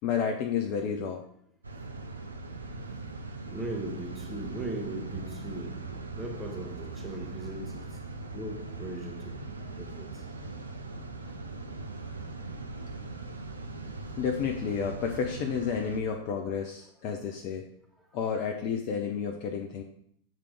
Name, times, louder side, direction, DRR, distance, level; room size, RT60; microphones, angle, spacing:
voice 1, 0.0-1.2 14.2-17.6 18.1-19.8, left 7 dB, 45° left, 0.6 m, -31 dB
sound 1, 1.6-16.0, right 3 dB, 80° right, 0.6 m, -40 dB
voice 2, 3.4-8.0 8.3-10.2, right 1 dB, 5° right, 1.5 m, -39 dB
7.5 x 3.4 x 4.9 m
figure-of-eight pair, 90°, 0 cm